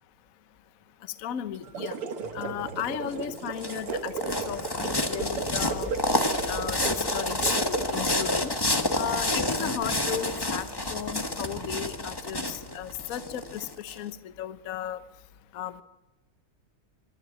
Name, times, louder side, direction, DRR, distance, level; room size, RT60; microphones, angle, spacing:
voice 1, 1.2-2.0 2.3-4.1 4.5-5.9 6.5-8.5 8.9-15.0 15.5-15.8, left 10 dB, 50° left, 12 dB, 1.1 m, -35 dB
sound 1, 1.5-8.3, right 5 dB, 85° right, 2.5 m, -35 dB
sound 2, 2.2-13.6, left 4 dB, 85° left, 3.2 m, -50 dB
sound 3, 3.1-13.9, left 2 dB, 15° left, 1.0 m, -29 dB
26.5 x 12.0 x 9.0 m, 1.1 s
omnidirectional pair, 2.4 m